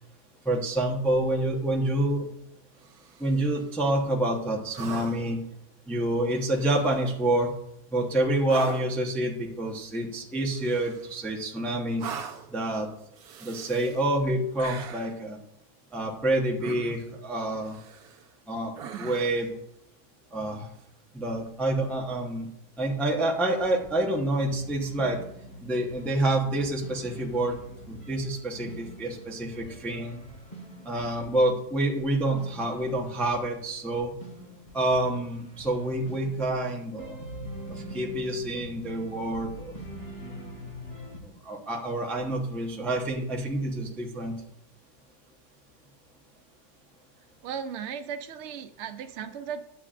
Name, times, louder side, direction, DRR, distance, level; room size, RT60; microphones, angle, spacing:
voice 1, 0.4-2.3 3.2-5.4 5.9-7.5 7.9-12.1 12.5-12.9 13.4-15.4 15.9-17.8 18.5-19.5 20.3-20.7 21.1-22.5 22.8-25.2 25.6-27.6 27.9-30.2 30.8-34.1 34.7-37.2 37.7-39.7 41.4-44.3, right 1 dB, ahead, 0 dB, 0.6 m, -27 dB
sound 1, 2.8-3.5 4.7-5.4 6.4-7.1 8.5-9.0 10.6-11.3 12.0-12.6 13.1-14.1 14.6-15.2 16.6-17.2 17.6-18.3 18.8-19.5 21.4-21.5, right 7 dB, 70° right, 1.2 m, -41 dB
sound 2, 23.2-41.2, equal, 30° left, 1.9 m, -44 dB
voice 2, 47.4-49.6, right 7 dB, 90° right, 7 dB, 0.6 m, -36 dB
10.5 x 8.5 x 2.5 m, 0.76 s
omnidirectional pair, 1.9 m